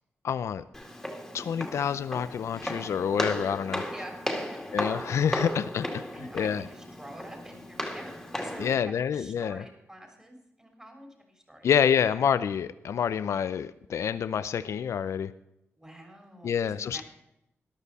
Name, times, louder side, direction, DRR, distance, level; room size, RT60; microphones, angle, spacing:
voice 1, 0.2-0.6 1.3-3.8 4.7-6.0 6.3-6.6 8.6-9.6 11.6-15.3 16.4-17.0, left 8 dB, 80° left, 13 dB, 0.5 m, -27 dB
Walk footsteps, 0.7-8.7, left 1 dB, 5° left, 2.3 m, -35 dB
voice 2, 3.7-4.6 6.1-8.1 8.4-11.7 15.8-17.0, right 1 dB, 15° right, 3 dB, 3.7 m, -47 dB
13.5 x 12.0 x 4.2 m, 0.83 s
wide cardioid pair, 115°, 5 cm